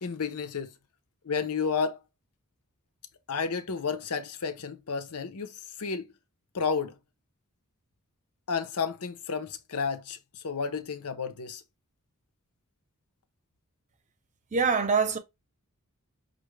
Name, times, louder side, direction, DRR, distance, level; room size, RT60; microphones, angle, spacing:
voice 1, 0.0-0.7 1.2-2.0 3.3-6.1 6.5-7.0 8.5-11.6, left 5 dB, 80° left, 0.8 m, -31 dB
voice 2, 14.5-15.2, right 5 dB, 35° right, 0.7 m, -24 dB
5.6 x 2.5 x 3.2 m
head